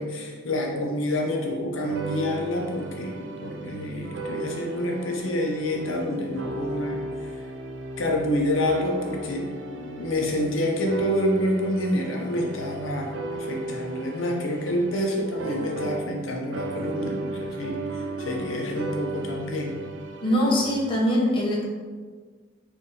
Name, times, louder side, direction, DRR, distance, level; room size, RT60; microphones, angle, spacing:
voice 1, 0.0-7.4 8.0-19.7, left 1 dB, 90° left, 0 dB, 0.7 m, -28 dB
sound 1, 1.8-16.3 16.5-21.0, right 2 dB, 65° right, 0.4 m, -35 dB
voice 2, 20.2-21.6, equal, 25° left, -4 dB, 0.7 m, -22 dB
4.4 x 2.6 x 3.1 m, 1.5 s
head